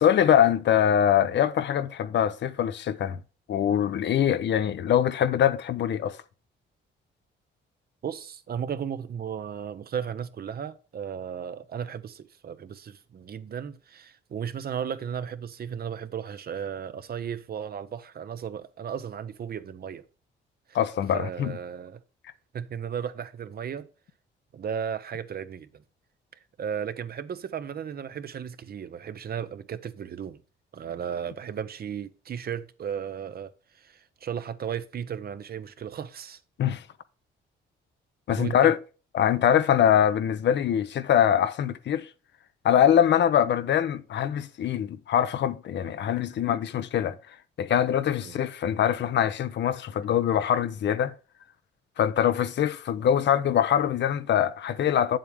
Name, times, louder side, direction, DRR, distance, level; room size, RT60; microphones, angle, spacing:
voice 1, 0.0-3.2 3.5-6.2 20.7-21.5 36.6-36.8 38.3-38.8 39.1-42.1 42.6-47.2 47.6-51.1 52.0-55.2, left 9 dB, 65° left, 0.8 m, -23 dB
voice 2, 8.0-20.0 20.7-20.8 21.1-22.0 22.5-23.9 24.5-25.8 26.6-30.4 30.7-36.4 38.4-38.7 48.2-48.4, right 8 dB, 50° right, 0.9 m, -35 dB
8.4 x 7.7 x 3.6 m
cardioid pair, 90°, 20 cm